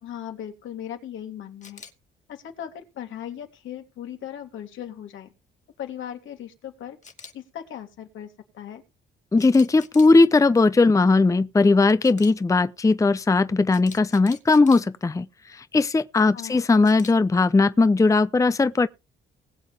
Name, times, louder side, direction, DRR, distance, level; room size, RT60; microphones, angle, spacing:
voice 1, 0.0-1.8 2.3-5.3 5.8-7.0 7.3-8.8 16.3-16.6, left 10 dB, 75° left, 3.1 m, -38 dB
Camera, 1.6-1.9 7.0-7.3 9.4-10.1 12.0-12.3 13.7-14.8 16.8-17.1, left 5 dB, 35° left, 2.5 m, -44 dB
voice 2, 9.3-18.9, left 3 dB, 15° left, 0.7 m, -19 dB
20.5 x 7.8 x 3.4 m
cardioid pair, 90°, 20 cm